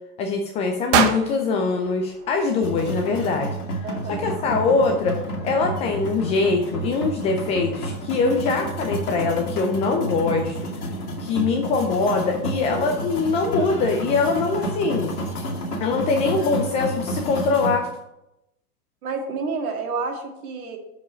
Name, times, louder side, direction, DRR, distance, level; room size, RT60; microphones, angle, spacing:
voice 1, 0.2-3.6 4.1-5.2 5.4-10.6 11.2-15.1 15.8-17.9, left 4 dB, 15° left, 3 dB, 0.4 m, -23 dB
sound 1, 0.9-3.1, right 8 dB, 45° right, 1.0 m, -26 dB
sound 2, 2.6-17.7, right 1 dB, 70° left, 2.1 m, -30 dB
voice 2, 3.8-4.3 19.0-20.8, right 4 dB, 60° right, 3 dB, 2.0 m, -29 dB
7.2 x 5.0 x 6.2 m, 0.88 s
hypercardioid pair, 110°, 47 cm